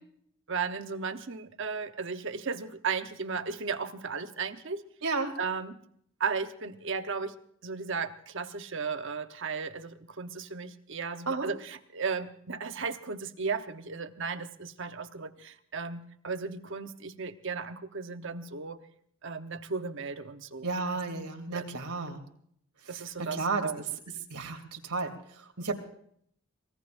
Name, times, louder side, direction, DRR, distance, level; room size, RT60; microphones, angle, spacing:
voice 1, 0.5-4.8 5.4-5.8 6.2-7.4 7.6-18.8 19.2-20.7 21.5-21.7 22.9-23.8, right 5 dB, 55° right, 8 dB, 1.0 m, -35 dB
voice 2, 5.0-5.3 11.3-11.5 20.6-22.2 22.8-23.7 24.3-25.8, right 3 dB, 85° right, 3 dB, 2.8 m, -33 dB
26.0 x 20.0 x 2.6 m, 0.66 s
head